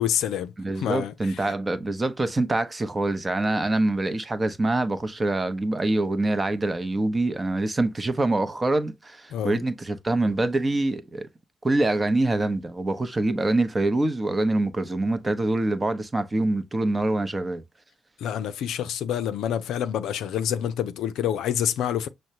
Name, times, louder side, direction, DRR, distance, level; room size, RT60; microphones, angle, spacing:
voice 1, 0.0-1.1 9.3-9.6 18.2-22.1, left 10 dB, 70° left, 0.4 m, -27 dB
voice 2, 0.6-11.3 11.6-17.6, right 2 dB, 25° right, 0.8 m, -25 dB
6.3 x 2.2 x 2.8 m
hypercardioid pair, 45°, 0 cm